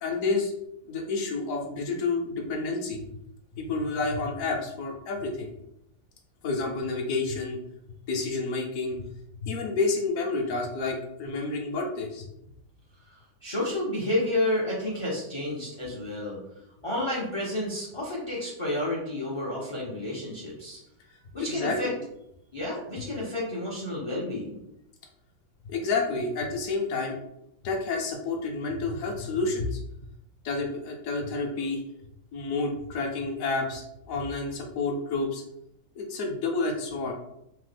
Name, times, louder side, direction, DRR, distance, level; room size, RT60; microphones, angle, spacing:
voice 1, 0.0-0.5 0.9-3.0 3.5-5.5 6.4-7.6 8.1-9.1 9.4-12.2 21.4-21.9 25.7-27.2 27.6-29.8 30.4-31.8 32.3-35.4 36.0-37.1, left 3 dB, 65° left, 1 dB, 0.9 m, -29 dB
voice 2, 13.1-16.4 16.8-20.8 21.3-21.9 22.5-24.6, left 1 dB, 45° left, -5 dB, 0.4 m, -30 dB
3.2 x 2.0 x 3.3 m, 0.81 s
omnidirectional pair, 1.7 m